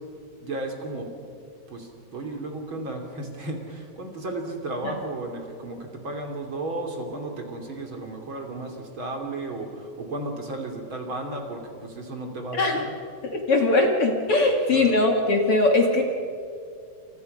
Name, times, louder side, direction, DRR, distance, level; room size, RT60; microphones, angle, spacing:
voice 1, 0.4-1.1 1.7-12.8 14.7-15.0, right 2 dB, 40° right, 2 dB, 3.4 m, -34 dB
voice 2, 12.5-12.8 13.2-16.0, left 2 dB, 50° left, 2 dB, 2.6 m, -21 dB
29.0 x 28.0 x 5.5 m, 2.4 s
omnidirectional pair, 3.7 m